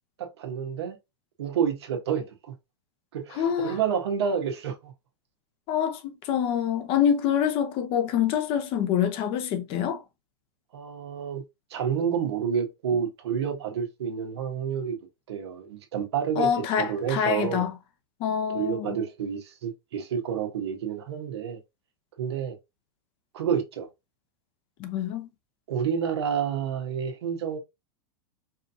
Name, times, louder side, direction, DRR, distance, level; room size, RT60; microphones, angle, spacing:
voice 1, 0.2-1.0 1.4-2.5 3.1-4.9 10.7-11.4 11.7-15.0 15.3-17.7 18.5-21.6 22.2-22.6 23.3-23.9 25.7-27.6, right 7 dB, 85° right, 1.4 m, -29 dB
voice 2, 3.4-3.8 5.7-10.0 16.4-17.7 18.2-19.0 24.8-25.3, left 8 dB, 40° left, 0.9 m, -26 dB
4.9 x 2.7 x 2.7 m
supercardioid pair, 130°, 14 cm